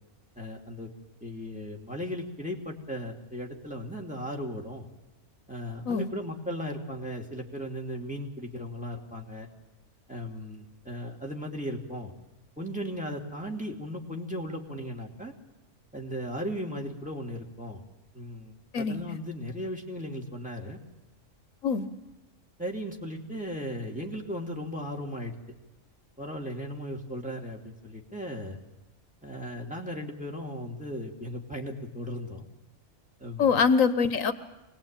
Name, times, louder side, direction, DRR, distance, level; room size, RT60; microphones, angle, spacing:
voice 1, 0.4-0.9 1.2-4.9 5.5-9.5 10.1-12.1 12.6-15.3 15.9-17.8 18.1-20.8 22.6-25.4 26.2-28.6 29.2-32.5 33.2-33.5, equal, 5° right, 0 dB, 2.6 m, -36 dB
voice 2, 33.4-34.3, left 5 dB, 75° left, 11 dB, 1.4 m, -24 dB
25.0 x 19.0 x 9.0 m, 1.0 s
omnidirectional pair, 1.4 m